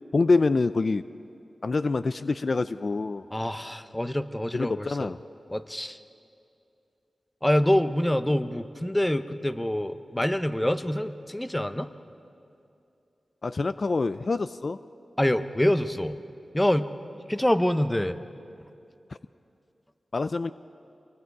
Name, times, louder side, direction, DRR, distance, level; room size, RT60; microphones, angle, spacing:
voice 1, 0.1-1.0 1.6-3.2 4.5-5.2 13.4-14.8 20.1-20.5, left 3 dB, 55° left, 13 dB, 0.4 m, -25 dB
voice 2, 3.3-5.1 5.5-6.0 7.4-11.9 15.2-16.2 16.5-16.9 17.3-18.2, left 1 dB, 10° left, 11 dB, 0.8 m, -26 dB
27.0 x 23.5 x 4.8 m, 2.6 s
wide cardioid pair, 65°, 0 cm